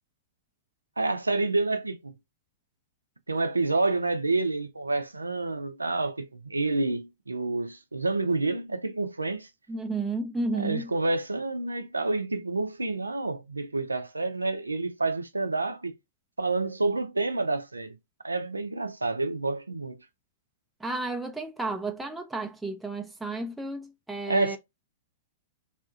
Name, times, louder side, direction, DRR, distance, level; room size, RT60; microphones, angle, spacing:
voice 1, 1.0-2.1 3.3-9.5 10.5-16.0 16.4-18.0 18.2-20.0 24.3-24.6, right 3 dB, 85° right, 0.5 m, -28 dB
voice 2, 9.7-10.8 20.8-24.6, right 3 dB, 5° right, 0.5 m, -32 dB
3.5 x 2.4 x 2.3 m
figure-of-eight pair, 100°, 0 cm